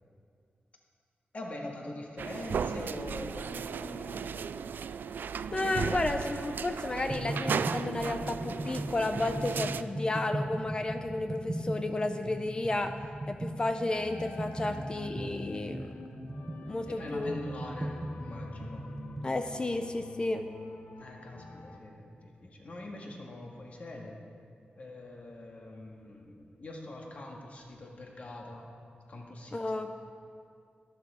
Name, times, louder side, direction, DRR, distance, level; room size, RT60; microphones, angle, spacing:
voice 1, 1.3-4.4 14.6-14.8 15.7-15.9 16.9-18.8 21.0-24.2 24.8-28.7 29.1-29.6, left 1 dB, 45° left, 0 dB, 1.8 m, -43 dB
sound 1, 2.2-9.8, right 6 dB, 75° right, 0.3 m, -36 dB
voice 2, 5.5-13.0 13.3-15.9 16.6-17.4 19.2-20.5 29.5-29.9, left 2 dB, 25° left, 7 dB, 0.5 m, -32 dB
sound 2, 7.1-19.4, right 1 dB, 20° right, 1.2 m, -38 dB
sound 3, 13.9-21.8, left 2 dB, 75° left, 1.1 m, -47 dB
14.0 x 12.5 x 4.9 m, 2.4 s
wide cardioid pair, 170°, 3 cm